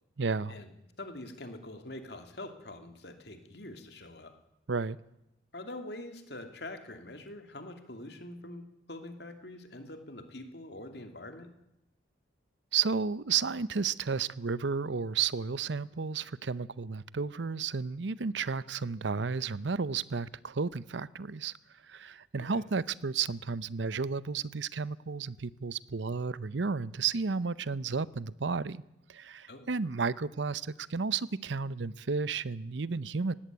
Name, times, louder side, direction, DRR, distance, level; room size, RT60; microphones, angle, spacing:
voice 1, 0.2-0.5 4.7-5.0 12.7-21.5 21.9-28.8 29.1-33.3, right 5 dB, 75° right, 0.7 m, -32 dB
voice 2, 1.0-4.3 5.5-8.6 8.9-11.5 22.5-22.6 29.5-29.7, left 1 dB, 60° left, 2.7 m, -44 dB
18.5 x 16.0 x 9.4 m
head